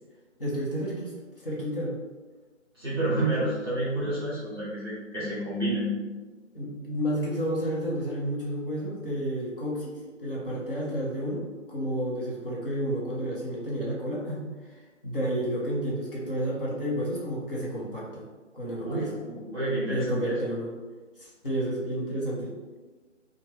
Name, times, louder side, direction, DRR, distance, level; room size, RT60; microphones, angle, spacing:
voice 1, 0.4-1.1 1.4-2.0 6.5-14.5 15.0-18.2 18.5-19.1 19.9-20.7 21.2-22.5, equal, 45° left, -6 dB, 0.8 m, -31 dB
voice 2, 2.7-5.9 18.8-20.4, right 1 dB, 20° right, -10 dB, 0.8 m, -29 dB
3.0 x 2.1 x 3.1 m, 1.3 s
figure-of-eight pair, 170°, 38 cm